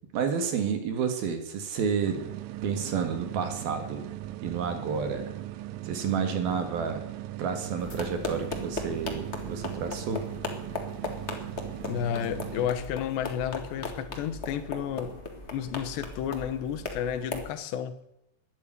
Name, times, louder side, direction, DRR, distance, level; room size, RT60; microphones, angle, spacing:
voice 1, 0.1-2.3 2.6-4.0 4.4-5.3 5.9-7.1 7.4-10.2, right 6 dB, 65° right, 3.5 m, -30 dB
sound 1, 2.0-12.7, right 14 dB, 80° right, 2.2 m, -39 dB
sound 2, 7.8-17.5, left 3 dB, 55° left, 0.7 m, -38 dB
voice 2, 11.9-15.2 15.5-18.0, left 9 dB, 80° left, 3.3 m, -32 dB
13.0 x 10.5 x 9.5 m
omnidirectional pair, 4.9 m